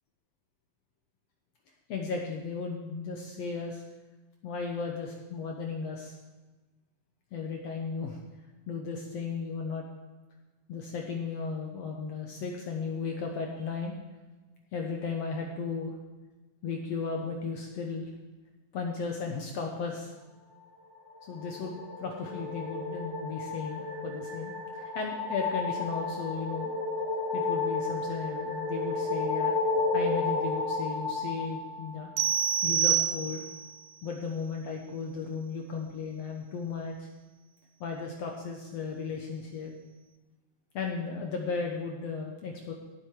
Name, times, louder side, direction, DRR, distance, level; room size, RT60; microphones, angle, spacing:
voice 1, 1.9-3.8 4.4-6.2 7.3-8.2 8.7-9.8 10.7-13.9 14.7-15.9 16.6-18.1 18.7-20.1 21.3-26.7 27.3-29.5 29.9-32.1 32.6-33.4 34.0-37.1 37.8-39.7 40.7-42.7, left 5 dB, 65° left, 1 dB, 1.7 m, -35 dB
sound 1, 21.1-32.5, left 3 dB, 35° right, 1.0 m, -32 dB
sound 2, 32.2-33.7, right 9 dB, 80° right, 1.8 m, -27 dB
17.5 x 7.7 x 4.8 m, 1.2 s
omnidirectional pair, 4.1 m